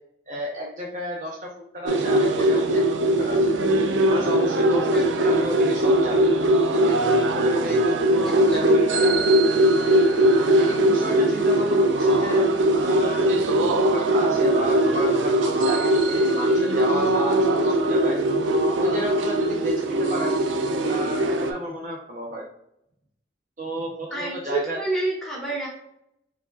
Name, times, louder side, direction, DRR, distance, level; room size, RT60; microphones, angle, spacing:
voice 1, 0.3-1.5 1.7-2.8 3.2-3.6 4.1-5.0 5.2-6.3 6.8-6.9 7.3-9.4 10.4-12.4 12.8-13.6 13.9-18.2 18.8-20.3 20.8-22.5 23.6-24.8, equal, 40° right, -1 dB, 0.6 m, -32 dB
sound 1, 1.8-21.5, right 1 dB, 85° right, 0.4 m, -20 dB
voice 2, 4.9-5.3 8.3-8.6 24.1-25.7, right 2 dB, 5° left, -6 dB, 1.0 m, -29 dB
4.5 x 2.7 x 2.4 m, 0.75 s
head